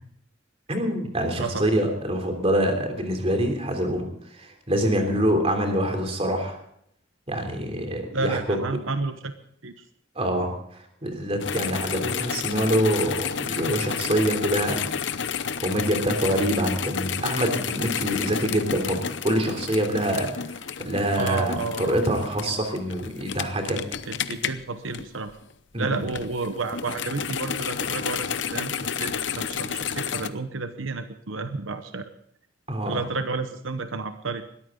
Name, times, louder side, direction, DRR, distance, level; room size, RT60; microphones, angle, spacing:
voice 1, 0.7-6.6 7.3-8.6 10.1-14.9 15.6-23.8 25.7-26.0 32.7-33.0, right 1 dB, 30° right, 4 dB, 3.2 m, -25 dB
voice 2, 8.1-9.3 9.6-9.8 21.2-22.0 24.1-25.3 25.8-32.1 32.9-34.4, right 3 dB, 85° right, 9 dB, 1.0 m, -31 dB
sound 1, 11.4-25.5 25.9-30.3, left 7 dB, 65° left, 0.8 m, -31 dB
21.0 x 14.0 x 3.9 m, 0.71 s
head